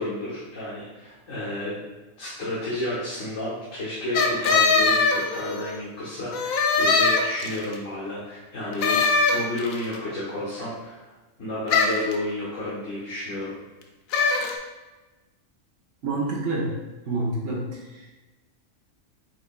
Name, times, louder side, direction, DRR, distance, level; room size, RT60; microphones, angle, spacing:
voice 1, 0.0-1.8 2.2-11.0 11.4-13.6, left 1 dB, 70° left, -9 dB, 1.6 m, -31 dB
sound 1, 4.1-5.8 6.3-7.7 8.8-9.8 11.7-12.1 14.1-14.6, left 4 dB, 90° left, 1.0 m, -21 dB
voice 2, 16.0-16.8 17.0-18.2, right 2 dB, 65° right, -4 dB, 1.5 m, -28 dB
8.2 x 2.8 x 2.3 m, 1.2 s
omnidirectional pair, 1.4 m